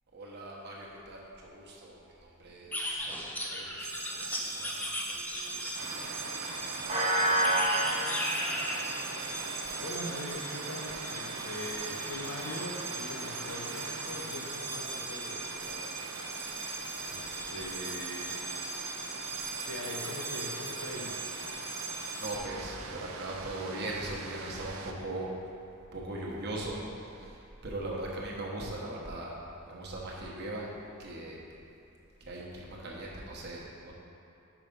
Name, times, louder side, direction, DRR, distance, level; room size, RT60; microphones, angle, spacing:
voice 1, 0.1-6.3 6.6-7.7 9.6-9.8 17.0-17.2 17.5-17.7 22.1-25.3 25.9-26.8 27.1-29.4 29.7-30.7 31.0-31.4 32.2-33.9, right 1 dB, 50° right, -3 dB, 1.0 m, -40 dB
sound 1, 2.7-6.0 7.4-8.9, left 1 dB, 10° left, 0.5 m, -35 dB
sound 2, 3.8-22.4, right 2 dB, 30° right, 0.8 m, -36 dB
sound 3, 5.7-24.9, right 4 dB, 70° right, 0.5 m, -42 dB
voice 2, 9.8-15.8 16.2-18.5 19.6-21.3, left 1 dB, 90° left, -1 dB, 0.9 m, -42 dB
5.5 x 4.9 x 5.2 m, 2.9 s
head